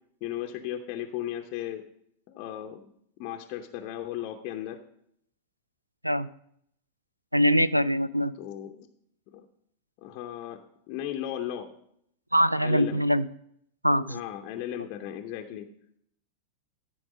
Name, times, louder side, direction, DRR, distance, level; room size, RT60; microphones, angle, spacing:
voice 1, 0.2-1.8 2.3-2.9 3.2-4.8 8.4-8.9 9.3-9.4 10.0-10.6 10.9-11.7 12.6-13.0 14.1-15.7, left 11 dB, 45° left, 4 dB, 0.7 m, -35 dB
voice 2, 7.3-8.3 12.3-13.3 13.8-14.2, equal, 90° right, 17 dB, 0.3 m, -23 dB
13.5 x 4.7 x 5.2 m, 0.71 s
figure-of-eight pair, 90°, 0 cm